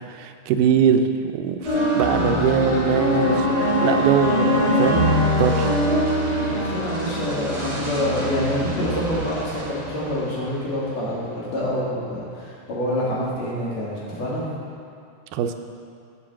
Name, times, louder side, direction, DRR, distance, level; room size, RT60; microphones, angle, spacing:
voice 1, 0.1-1.0 1.3-1.6 1.9-3.5 3.8-5.1 5.4-5.7 15.3-15.5, right 8 dB, 85° right, 7 dB, 2.1 m, -21 dB
sound 1, 1.6-8.3, equal, 10° left, 2.5 m, -22 dB
sound 2, 1.6-11.1, left 1 dB, 25° right, 2.3 m, -32 dB
voice 2, 6.4-14.5, left 1 dB, 60° left, -7 dB, 3.5 m, -27 dB
8.3 x 7.5 x 7.1 m, 2.4 s
omnidirectional pair, 3.6 m